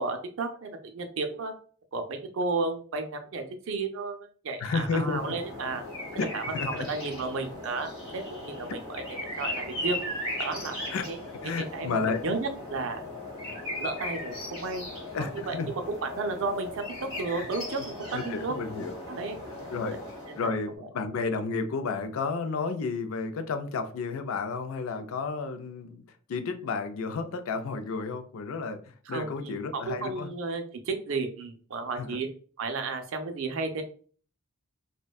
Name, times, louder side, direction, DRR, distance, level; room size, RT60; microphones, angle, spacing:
voice 1, 0.0-1.5 1.9-4.2 4.4-5.8 6.1-10.0 10.4-10.7 11.1-11.2 11.7-13.0 13.8-14.9 15.2-16.8 17.2-17.9 18.2-18.5 19.1-19.7 20.4-20.5 29.1-32.3 32.6-33.8, right 3 dB, 65° right, 6 dB, 0.4 m, -33 dB
voice 2, 4.6-5.3 6.2-6.9 10.9-11.1 11.4-12.2 15.1-15.7 17.4-17.5 18.1-19.0 19.7-20.0 20.4-26.0 26.3-30.3 32.0-32.2, left 4 dB, 70° left, 8 dB, 0.4 m, -32 dB
sound 1, 4.7-20.6, left 1 dB, 25° left, 1.0 m, -38 dB
2.5 x 2.2 x 2.2 m, 0.43 s
head